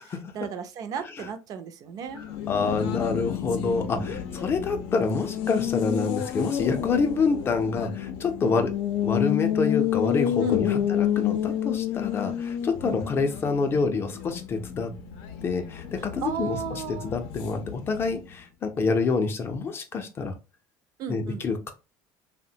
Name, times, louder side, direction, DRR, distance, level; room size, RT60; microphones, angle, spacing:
voice 1, 0.0-2.2 3.9-4.3 8.4-8.6 10.4-10.9 12.8-13.0 16.2-17.1 21.0-21.5, right 7 dB, 45° right, 0.4 m, -35 dB
Race car auto racing, 2.1-18.3, left 10 dB, 80° left, 0.5 m, -30 dB
voice 2, 2.2-8.7 9.0-14.9 15.4-20.3 21.1-21.7, left 4 dB, 30° left, 0.5 m, -27 dB
3.2 x 2.1 x 2.7 m
cardioid pair, 140°, 8 cm